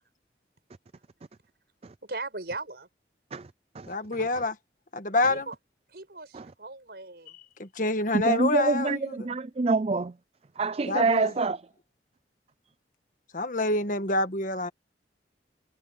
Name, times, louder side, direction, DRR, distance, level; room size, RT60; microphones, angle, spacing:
voice 1, 2.0-2.9 5.3-5.5 5.9-7.4, right 3 dB, 60° right, 6.1 m, -38 dB
voice 2, 3.9-4.6 4.9-5.5 7.6-9.3 10.9-11.3 13.3-14.7, left 2 dB, 50° left, 1.6 m, -27 dB
voice 3, 8.2-10.1 10.6-11.6, right 3 dB, 35° right, 0.4 m, -26 dB
head